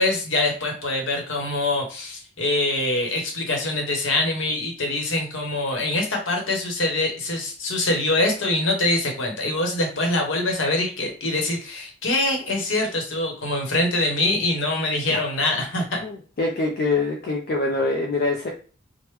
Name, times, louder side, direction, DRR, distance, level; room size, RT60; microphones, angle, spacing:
voice 1, 0.0-16.0, left 2 dB, 70° left, 2 dB, 0.9 m, -24 dB
voice 2, 16.0-18.5, left 3 dB, 45° left, 0 dB, 0.4 m, -24 dB
3.1 x 2.0 x 3.2 m, 0.39 s
head